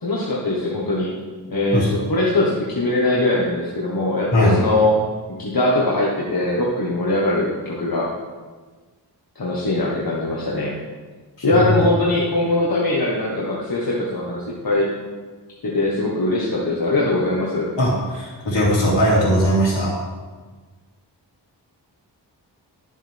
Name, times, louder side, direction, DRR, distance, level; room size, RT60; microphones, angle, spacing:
voice 1, 0.0-1.1 1.5-5.0 5.4-8.1 9.4-10.7 11.4-14.9 15.6-17.7, left 2 dB, 55° left, -5 dB, 1.6 m, -21 dB
voice 2, 11.4-11.7 17.8-19.9, equal, 85° left, -5 dB, 2.9 m, -19 dB
12.0 x 7.3 x 3.6 m, 1.4 s
wide cardioid pair, 75°, 43 cm